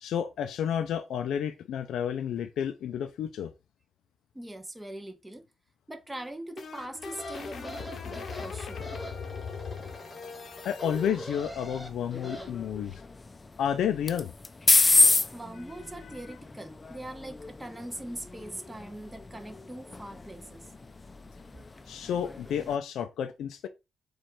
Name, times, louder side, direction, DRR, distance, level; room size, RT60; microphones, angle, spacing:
voice 1, 0.0-3.5 10.6-13.0 13.6-14.3 21.9-23.7, left 9 dB, 85° left, 0.4 m, -31 dB
voice 2, 4.3-5.5 5.9-7.8 8.0-8.9 12.9-13.0 15.3-20.7, right 1 dB, 15° right, 0.7 m, -42 dB
sound 1, 6.1-11.1, left 6 dB, 60° left, 0.8 m, -40 dB
sound 2, 7.1-12.5, equal, 10° left, 1.5 m, -43 dB
sound 3, 10.9-22.8, left 3 dB, 30° left, 0.5 m, -30 dB
4.5 x 2.4 x 4.4 m
cardioid pair, 70°, 0 cm